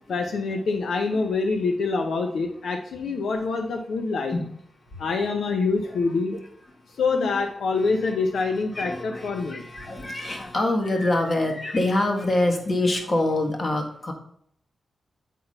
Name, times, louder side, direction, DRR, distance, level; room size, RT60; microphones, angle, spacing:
voice 1, 0.1-4.3 5.0-6.4 7.0-9.6, left 4 dB, 80° left, 4 dB, 0.6 m, -25 dB
voice 2, 8.4-14.1, left 2 dB, 40° left, 3 dB, 1.6 m, -25 dB
8.3 x 4.0 x 5.4 m, 0.67 s
cardioid pair, 80°, 0 cm